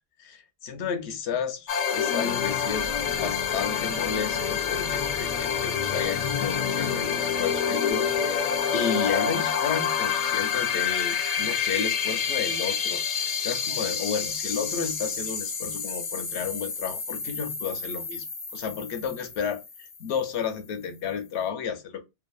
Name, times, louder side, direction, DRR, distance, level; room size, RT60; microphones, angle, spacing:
voice 1, 0.2-18.3 18.5-22.0, left 6 dB, 80° left, 0.9 m, -32 dB
sound 1, 1.7-20.1, left 7 dB, 50° left, 0.5 m, -28 dB
2.8 x 2.3 x 2.2 m
omnidirectional pair, 1.1 m